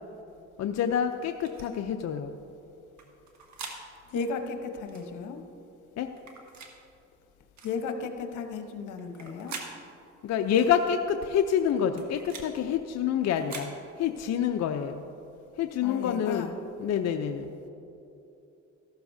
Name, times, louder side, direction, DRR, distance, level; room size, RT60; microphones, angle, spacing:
voice 1, 0.6-2.3 6.0-6.1 10.2-13.7 14.0-15.0 15.6-16.5 16.8-17.5, left 8 dB, 60° left, 6 dB, 0.6 m, -27 dB
sound 1, 1.4-1.7 3.0-3.8 4.9-5.1 6.2-6.7 7.6-7.8 9.0-9.7 10.5-10.7 11.7-12.5 13.3-13.7, right 5 dB, 65° right, 1.6 m, -43 dB
voice 2, 4.1-5.4 7.6-9.6 15.8-16.5, left 5 dB, 85° left, 5 dB, 1.0 m, -34 dB
14.5 x 12.5 x 2.7 m, 2.9 s
cardioid pair, 90°, 30 cm